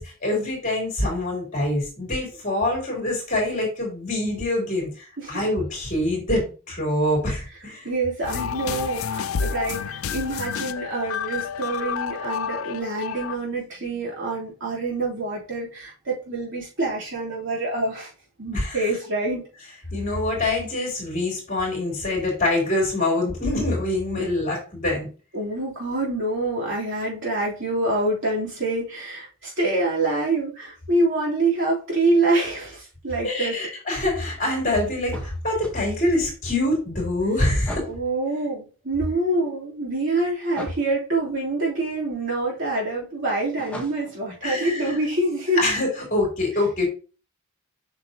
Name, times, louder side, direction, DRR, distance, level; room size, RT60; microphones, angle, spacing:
voice 1, 0.0-7.9 18.5-18.8 19.9-25.1 33.2-37.8 44.4-44.9 45.6-46.9, left 1 dB, 35° left, -2 dB, 3.6 m, -25 dB
voice 2, 7.8-18.1 18.4-19.5 24.2-24.3 25.3-33.6 37.9-45.6, right 2 dB, 60° right, -5 dB, 3.5 m, -26 dB
sound 1, 8.2-13.4, left 7 dB, 80° left, 0.5 m, -29 dB
sound 2, 35.1-35.8 37.6-38.0 40.5-40.9 43.6-44.2, left 1 dB, 5° left, 1.3 m, -36 dB
7.8 x 5.9 x 2.9 m, 0.35 s
head